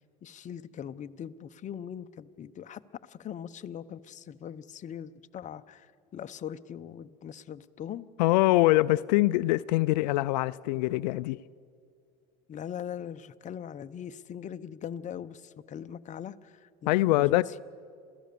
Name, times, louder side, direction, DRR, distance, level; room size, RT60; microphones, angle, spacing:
voice 1, 0.0-8.1 12.5-17.6, left 9 dB, 35° left, 0.8 m, -41 dB
voice 2, 8.2-11.4 16.9-17.4, left 18 dB, 90° left, 0.4 m, -24 dB
27.5 x 15.5 x 6.9 m
supercardioid pair, 105°, 21 cm